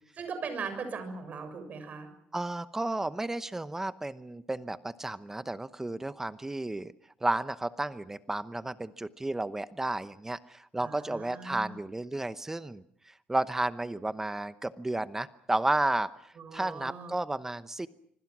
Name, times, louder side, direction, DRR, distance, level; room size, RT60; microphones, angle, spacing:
voice 1, 0.2-2.1 10.8-11.7 16.4-17.1, right 5 dB, 45° right, 9 dB, 6.9 m, -39 dB
voice 2, 2.3-6.9 7.2-17.9, right 2 dB, 10° right, 13 dB, 0.9 m, -32 dB
25.5 x 24.5 x 6.2 m, 0.67 s
cardioid pair, 115°, 4 cm